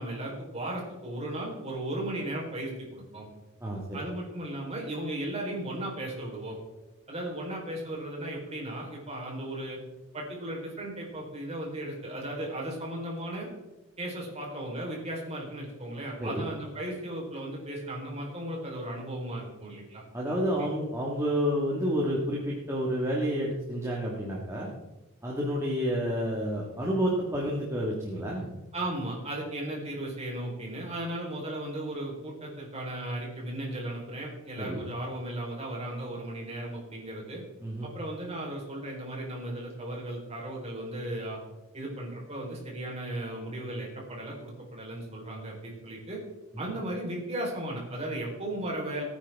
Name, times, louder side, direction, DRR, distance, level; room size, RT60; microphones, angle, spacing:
voice 1, 0.0-3.3 3.9-6.6 7.1-9.8 10.1-13.5 14.0-20.7 28.7-37.4 37.8-41.4 41.7-46.2 46.6-49.0, right 1 dB, 30° right, -2 dB, 4.1 m, -36 dB
voice 2, 20.1-24.7 25.2-28.5 34.6-34.8 37.6-37.9 46.5-46.6, equal, 15° right, -4 dB, 1.8 m, -29 dB
18.0 x 9.5 x 3.6 m, 1.1 s
head